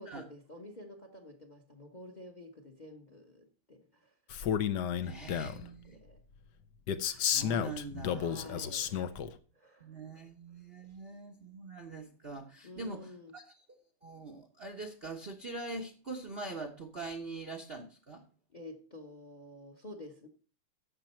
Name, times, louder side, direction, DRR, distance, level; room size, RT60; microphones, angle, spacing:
voice 1, 0.0-4.1 4.9-6.2 8.1-9.2 9.5-10.2 10.9-11.0 11.4-11.5 12.6-13.3 18.5-20.3, left 1 dB, 30° left, 1.0 m, -50 dB
Male speech man speaking, 4.3-5.6 6.9-9.3, left 8 dB, 65° left, 1.2 m, -32 dB
voice 2, 5.0-6.0 7.0-8.7 9.8-13.4 14.0-18.2, right 3 dB, 40° right, 0.9 m, -43 dB
12.0 x 7.3 x 4.3 m
omnidirectional pair, 2.3 m